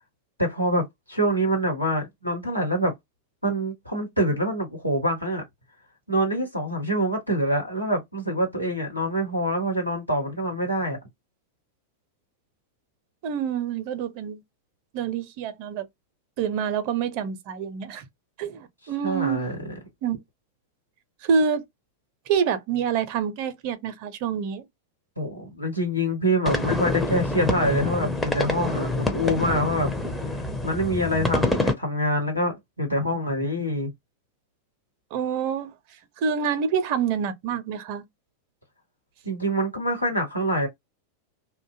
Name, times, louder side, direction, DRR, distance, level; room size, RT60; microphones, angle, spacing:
voice 1, 0.4-2.9 3.4-5.4 6.1-11.0 19.0-19.7 25.2-30.0 30.6-33.9 39.2-40.7, equal, 90° left, 1.0 m, -25 dB
voice 2, 13.2-14.4 14.9-15.9 16.4-18.0 18.4-19.5 20.0-20.2 21.2-21.6 22.3-24.6 35.1-35.7 36.2-38.0, right 7 dB, 45° right, 0.6 m, -27 dB
sound 1, 26.5-31.7, left 2 dB, 5° left, 0.5 m, -26 dB
2.5 x 2.1 x 2.5 m
figure-of-eight pair, 90°, 0 cm